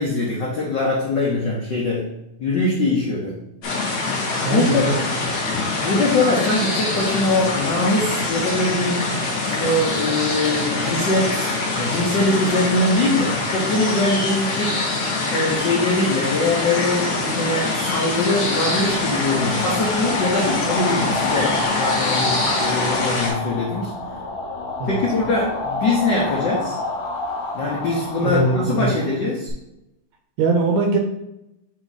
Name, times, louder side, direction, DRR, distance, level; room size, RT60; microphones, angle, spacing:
voice 1, 0.0-2.1 2.4-3.4 4.1-4.9 5.8-9.1 9.4-14.8 15.3-23.9 24.8-26.8 27.5-29.5, left 2 dB, 85° left, -3 dB, 0.9 m, -22 dB
sound 1, 3.6-23.3, left 3 dB, 60° left, 2.5 m, -24 dB
voice 2, 4.4-5.0 24.8-25.0 28.2-28.9 30.4-31.0, right 3 dB, 75° right, 3 dB, 1.8 m, -21 dB
sound 2, 18.4-29.5, left 2 dB, 40° left, 1.5 m, -28 dB
8.5 x 2.8 x 4.0 m, 0.87 s
omnidirectional pair, 3.4 m